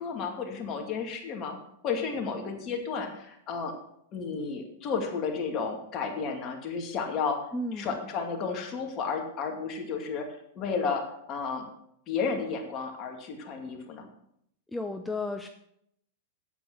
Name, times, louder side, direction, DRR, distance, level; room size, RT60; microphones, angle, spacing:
voice 1, 0.0-1.6 1.8-3.7 4.1-7.4 7.8-10.3 10.6-11.7 12.1-14.1, left 5 dB, 35° left, 3 dB, 2.4 m, -32 dB
voice 2, 7.5-8.0 14.7-15.5, left 2 dB, 5° left, 5 dB, 0.7 m, -33 dB
8.6 x 8.3 x 6.3 m, 0.74 s
hypercardioid pair, 100°, 0 cm